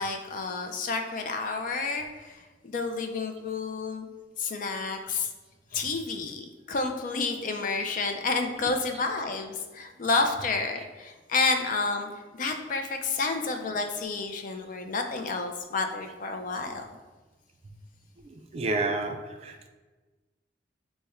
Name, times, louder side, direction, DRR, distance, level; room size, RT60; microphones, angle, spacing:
voice 1, 0.0-4.1 4.4-5.3 5.7-16.8, left 4 dB, 45° left, 5 dB, 0.4 m, -30 dB
voice 2, 18.3-19.7, right 2 dB, 35° right, 5 dB, 0.3 m, -30 dB
4.2 x 2.1 x 3.5 m, 1.2 s
head